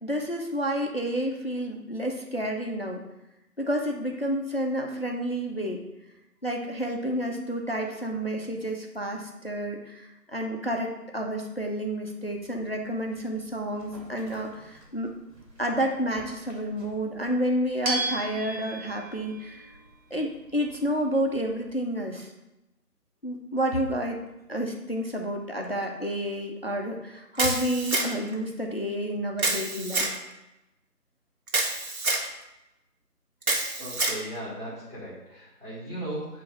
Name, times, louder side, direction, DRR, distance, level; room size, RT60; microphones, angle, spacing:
voice 1, 0.0-3.0 3.6-5.8 6.4-15.1 15.6-19.7 20.1-22.3 23.2-24.2 24.5-30.1, equal, 40° left, 1 dB, 0.7 m, -30 dB
sound 1, 12.3-21.7, right 2 dB, 80° right, 2.5 m, -39 dB
Camera, 27.4-28.3 29.4-30.1 31.5-32.3 33.4-34.2, right 2 dB, 60° right, 1.7 m, -27 dB
voice 2, 33.8-36.4, right 1 dB, 15° right, -12 dB, 1.1 m, -37 dB
8.4 x 3.1 x 6.1 m, 0.95 s
figure-of-eight pair, 165°, 48 cm